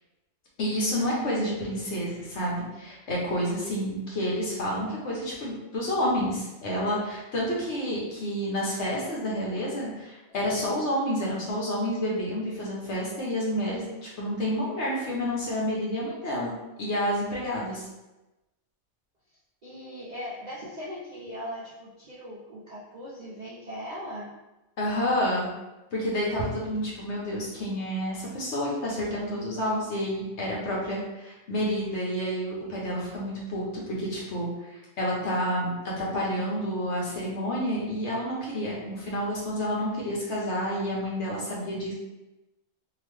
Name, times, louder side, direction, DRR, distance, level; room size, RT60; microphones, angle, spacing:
voice 1, 0.6-16.5 16.8-17.9 24.8-25.5 25.9-41.9, equal, 55° left, -4 dB, 1.0 m, -29 dB
voice 2, 19.6-24.3, equal, 60° right, -7 dB, 0.4 m, -39 dB
2.9 x 2.4 x 3.2 m, 1.0 s
omnidirectional pair, 1.5 m